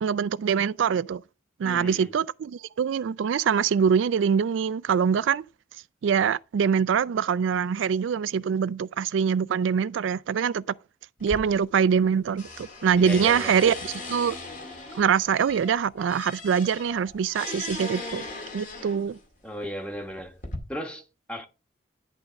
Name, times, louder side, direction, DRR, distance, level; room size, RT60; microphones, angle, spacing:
voice 1, 0.0-1.2 1.6-5.4 6.0-10.6 11.2-14.4 14.9-18.2 18.5-19.2, right 7 dB, 80° right, 0.3 m, -24 dB
voice 2, 1.6-2.1 12.9-13.6 19.4-20.4 20.7-21.5, equal, 5° left, 1.3 m, -35 dB
sound 1, 11.2-12.1 12.4-19.2 20.0-20.6, left 2 dB, 45° left, 2.2 m, -39 dB
10.5 x 3.6 x 5.1 m
head